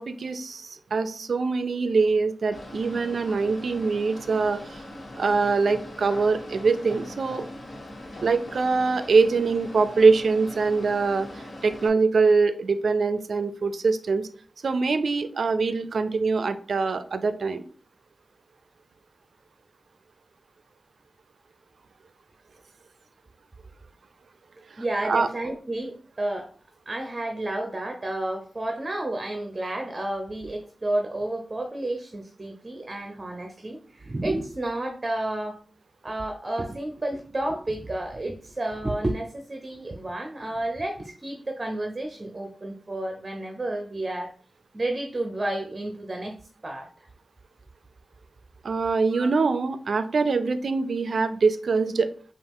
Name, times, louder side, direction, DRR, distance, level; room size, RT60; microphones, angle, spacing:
voice 1, 0.0-4.8 5.2-7.4 8.2-14.3 14.6-17.6 25.0-25.3 48.6-52.1, right 4 dB, 75° right, 11 dB, 0.4 m, -23 dB
sound 1, 2.5-11.9, left 1 dB, 55° left, 1.4 m, -41 dB
voice 2, 24.6-26.5 26.9-35.6 36.0-44.3 44.7-46.4 46.6-47.1 49.1-49.3, right 1 dB, 30° right, 3 dB, 0.7 m, -31 dB
5.6 x 2.4 x 3.6 m, 0.43 s
wide cardioid pair, 90°, 0 cm